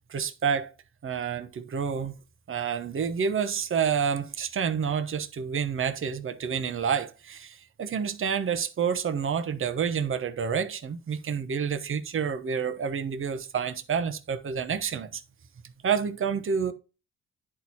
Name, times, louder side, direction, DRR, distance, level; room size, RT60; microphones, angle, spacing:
voice 1, 0.1-0.7 1.0-2.2 2.5-15.2 15.8-16.7, right 7 dB, 45° right, 1.1 m, -29 dB
10.0 x 4.6 x 4.2 m
cardioid pair, 90°, 30 cm